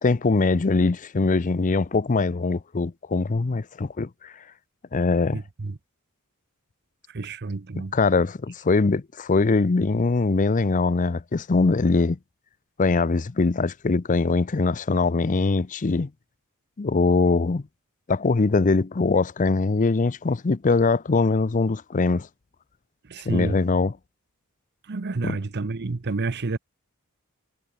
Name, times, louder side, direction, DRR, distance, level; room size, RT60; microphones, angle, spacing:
voice 1, 0.0-4.3 4.9-5.4 7.9-12.2 12.8-16.1 16.8-17.6 18.1-22.3 23.3-23.9 25.2-25.4, left 3 dB, 35° left, 0.5 m, -22 dB
voice 2, 5.3-5.8 7.1-8.0 23.1-23.6 24.9-26.6, right 3 dB, 50° right, 0.7 m, -29 dB
head